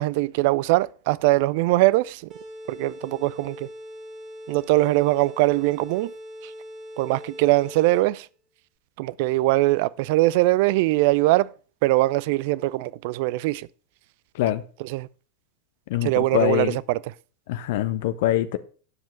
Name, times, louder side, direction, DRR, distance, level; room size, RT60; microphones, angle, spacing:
voice 1, 0.0-2.2 2.7-3.7 4.5-6.1 6.4-6.5 7.0-8.3 9.0-11.5 11.8-13.7 14.9-15.1 16.0-17.0, right 19 dB, 50° right, 0.3 m, -21 dB
sound 1, 2.3-8.2, equal, 25° right, 2.1 m, -41 dB
voice 2, 15.9-16.8 17.5-18.6, left 13 dB, 50° left, 0.6 m, -24 dB
9.8 x 7.3 x 4.5 m
figure-of-eight pair, 90°, 0 cm